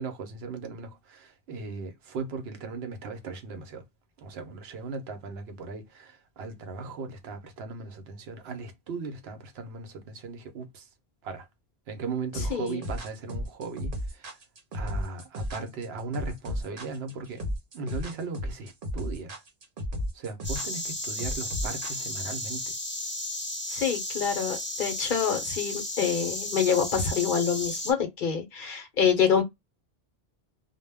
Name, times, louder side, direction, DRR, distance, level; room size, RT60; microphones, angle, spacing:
voice 1, 0.0-3.8 4.2-10.9 11.2-11.5 11.9-14.4 14.7-17.4 17.7-19.4 20.1-22.7, right 4 dB, 80° right, 0.9 m, -38 dB
sound 1, 12.3-22.4, equal, 60° right, 0.9 m, -34 dB
Insect, 20.4-27.9, left 1 dB, 15° left, 0.6 m, -34 dB
voice 2, 23.7-29.4, left 7 dB, 60° left, 0.8 m, -26 dB
2.2 x 2.0 x 3.3 m
omnidirectional pair, 1.0 m